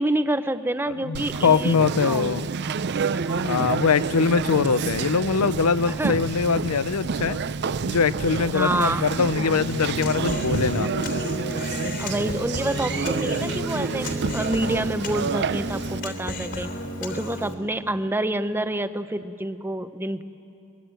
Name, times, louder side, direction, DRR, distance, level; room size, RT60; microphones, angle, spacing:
voice 1, 0.0-2.3 2.7-2.8 3.1-3.5 5.9-6.2 8.5-9.1 12.0-16.7 17.0-20.2, right 1 dB, 10° right, 11 dB, 0.7 m, -28 dB
voice 2, 1.0-2.5 3.4-7.4 7.8-10.9, left 5 dB, 85° left, 17 dB, 0.6 m, -22 dB
Conversation, 1.1-16.0, right 5 dB, 50° right, 0.5 m, -29 dB
Human voice, 9.5-17.5, left 1 dB, 55° left, 3.3 m, -32 dB
24.0 x 21.5 x 9.0 m, 2.8 s
head